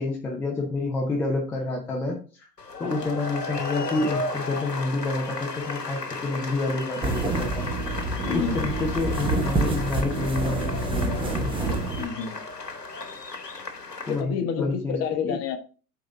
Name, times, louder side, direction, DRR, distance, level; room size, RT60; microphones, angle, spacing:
voice 1, 0.0-2.2 2.8-7.7 8.3-11.5 14.1-15.0 15.2-15.4, left 2 dB, 5° left, 0 dB, 0.3 m, -28 dB
sound 1, 2.6-14.2, left 3 dB, 90° left, 1.1 m, -34 dB
sound 2, 7.0-12.1, right 3 dB, 10° right, 1.0 m, -27 dB
voice 2, 8.2-8.7 12.0-12.4 14.1-15.6, left 7 dB, 30° left, 7 dB, 1.1 m, -29 dB
7.8 x 4.0 x 3.5 m, 0.37 s
figure-of-eight pair, 95°, 47 cm